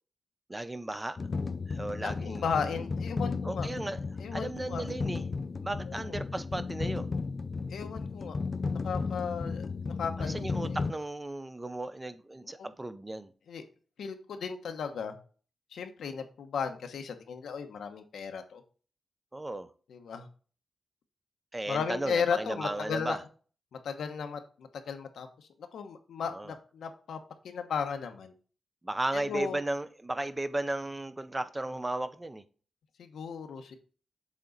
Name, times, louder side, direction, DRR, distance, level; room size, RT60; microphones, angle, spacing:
voice 1, 0.5-1.2 1.7-2.8 3.4-4.0 4.3-5.2 5.6-7.1 10.2-13.3 19.3-19.7 21.5-23.2 26.3-26.5 28.8-32.4, right 1 dB, 20° right, 11 dB, 0.5 m, -35 dB
sound 1, 1.2-10.9, left 4 dB, 40° left, 0.4 m, -34 dB
voice 2, 2.0-3.7 4.2-4.8 5.9-6.2 7.7-8.4 8.7-10.8 12.4-12.7 13.5-13.6 14.0-15.2 15.7-18.6 19.9-20.3 21.7-23.2 23.8-28.3 29.1-29.6 33.0-33.8, left 6 dB, 85° left, 6 dB, 0.9 m, -35 dB
7.3 x 3.8 x 3.9 m, 0.40 s
cardioid pair, 95°, 0 cm